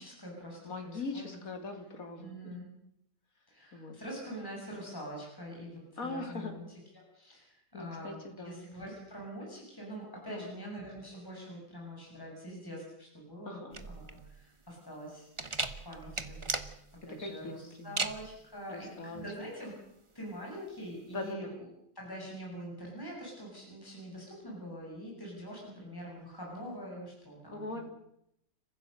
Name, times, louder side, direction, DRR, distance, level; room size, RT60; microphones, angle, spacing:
voice 1, 0.0-1.4 2.2-2.7 3.5-15.3 15.8-16.7 17.1-19.7 20.1-21.5 22.0-27.8, equal, 10° left, -2 dB, 7.0 m, -44 dB
voice 2, 0.6-2.4 3.7-4.0 6.0-6.6 7.7-8.7 10.3-10.5 13.5-13.8 17.2-17.5 17.8-18.0 18.7-19.2 21.1-21.5 27.5-27.8, left 3 dB, 50° left, 4 dB, 3.5 m, -40 dB
sound 1, 13.7-21.3, right 3 dB, 20° right, 1.0 m, -39 dB
30.0 x 15.5 x 6.7 m, 0.78 s
omnidirectional pair, 1.9 m